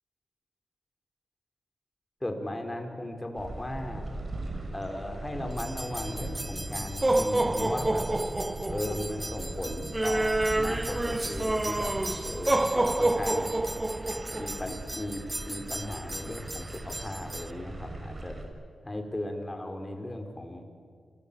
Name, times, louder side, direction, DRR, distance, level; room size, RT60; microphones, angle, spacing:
voice 1, 2.2-4.0 4.7-8.1 8.7-11.9 12.2-13.5 14.3-18.4 18.8-20.6, left 1 dB, 20° left, 4 dB, 4.8 m, -37 dB
sound 1, 3.4-18.5, right 2 dB, 40° right, 5.7 m, -40 dB
sound 2, 5.6-17.5, right 2 dB, 20° right, 0.6 m, -29 dB
27.5 x 21.0 x 8.8 m, 2.1 s
cardioid pair, 65°, 0 cm